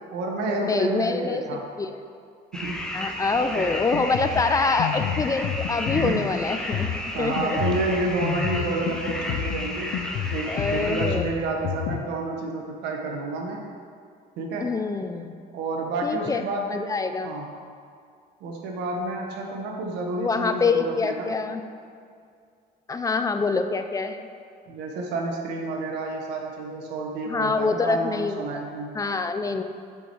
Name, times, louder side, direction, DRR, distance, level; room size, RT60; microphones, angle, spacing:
voice 1, 0.1-1.7 2.5-2.8 3.3-3.7 5.9-6.4 7.1-9.9 10.3-13.6 14.4-14.7 15.5-16.7 17.2-17.5 18.4-21.3 24.7-28.9, right 2 dB, 85° right, 0 dB, 1.4 m, -30 dB
voice 2, 0.7-1.9 2.9-7.6 10.5-11.2 14.6-15.3 16.0-16.4 16.7-17.3 20.2-21.6 22.9-24.3 27.3-28.6 28.9-29.6, left 4 dB, 20° left, 8 dB, 0.5 m, -25 dB
sound 1, 2.5-11.1, left 1 dB, 5° left, 0.9 m, -33 dB
Drum kit, 3.7-12.0, left 10 dB, 75° left, 0.6 m, -31 dB
6.3 x 6.3 x 6.3 m, 2.3 s
cardioid pair, 110°, 17 cm